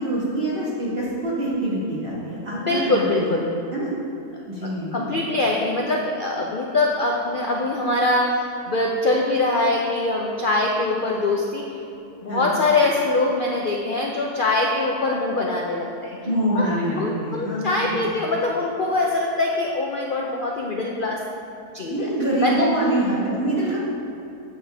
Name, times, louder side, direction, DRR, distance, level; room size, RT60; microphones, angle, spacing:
voice 1, 0.0-3.4 3.7-3.9 4.5-5.1 12.3-12.5 16.2-18.2 21.9-23.8, right 1 dB, 35° right, -7 dB, 1.5 m, -25 dB
voice 2, 2.5-3.5 4.6-8.4 8.7-11.7 12.2-16.2 16.5-16.7 16.9-21.2 21.7-21.9 22.4-22.7, left 2 dB, 70° left, -1 dB, 0.4 m, -23 dB
7.7 x 6.5 x 3.4 m, 2.8 s
omnidirectional pair, 1.6 m